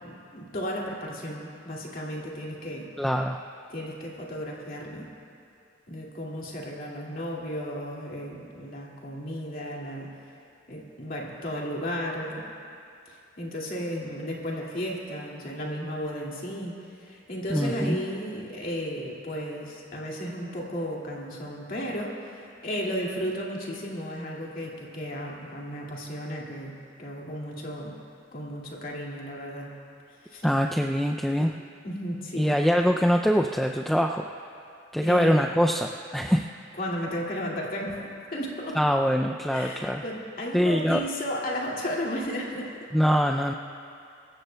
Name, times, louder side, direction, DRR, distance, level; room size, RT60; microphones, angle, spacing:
voice 1, 0.0-2.9 3.7-5.1 5.9-10.1 10.7-12.4 13.1-16.7 17.0-27.9 28.3-29.8 30.2-30.5 31.4-31.5 31.8-32.6 35.0-35.7 36.7-38.8 39.5-42.9, equal, 50° left, -3 dB, 2.2 m, -34 dB
voice 2, 3.0-3.4 17.5-18.0 30.4-31.5 32.4-34.3 34.9-36.5 38.8-40.0 40.5-41.0 42.9-43.5, equal, ahead, 2 dB, 0.3 m, -23 dB
24.5 x 14.5 x 2.2 m, 2.6 s
head